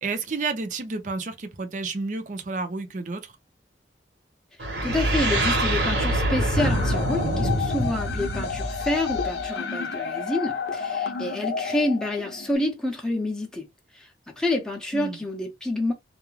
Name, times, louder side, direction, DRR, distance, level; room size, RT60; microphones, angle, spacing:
voice 1, 0.0-3.3 14.9-15.2, right 3 dB, 45° right, 0.5 m, -31 dB
sound 1, 4.6-9.4, right 1 dB, 75° right, 1.1 m, -25 dB
voice 2, 4.8-13.7 13.9-15.9, left 1 dB, 5° left, 0.6 m, -28 dB
sound 2, 6.6-12.6, left 6 dB, 65° left, 0.5 m, -31 dB
2.4 x 2.1 x 3.0 m
head